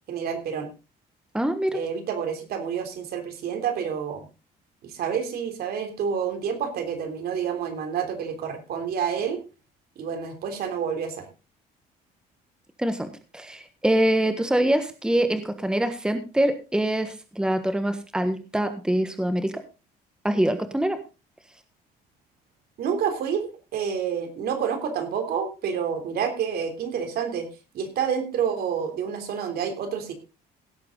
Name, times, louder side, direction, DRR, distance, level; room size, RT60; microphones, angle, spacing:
voice 1, 0.1-0.7 1.7-4.2 4.8-9.4 10.0-11.2 22.8-27.5 27.7-30.1, right 7 dB, 65° right, 6 dB, 3.4 m, -28 dB
voice 2, 1.3-1.8 12.8-19.6 20.2-21.0, right 1 dB, 5° right, 9 dB, 1.4 m, -24 dB
17.0 x 8.1 x 3.9 m, 0.30 s
cardioid pair, 110°, 17 cm